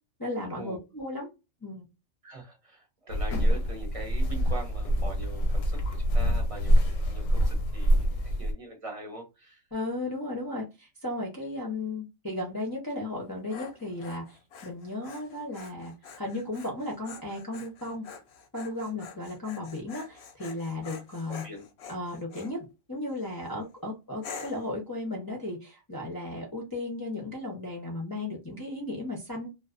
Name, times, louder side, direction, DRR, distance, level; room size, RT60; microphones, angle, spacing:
voice 1, 0.2-1.3 1.6-1.9 3.3-3.4 9.7-18.0 18.5-21.4 21.9-22.6 22.9-29.5, left 2 dB, 25° left, 0.5 m, -35 dB
voice 2, 2.2-9.6 21.3-21.6, right 1 dB, 30° right, 0.8 m, -43 dB
sound 1, 3.1-8.5, equal, 90° left, 1.0 m, -25 dB
Dog, 13.1-22.6 23.1-23.5 24.2-24.7, left 5 dB, 65° left, 0.8 m, -46 dB
2.4 x 2.4 x 2.4 m
omnidirectional pair, 1.3 m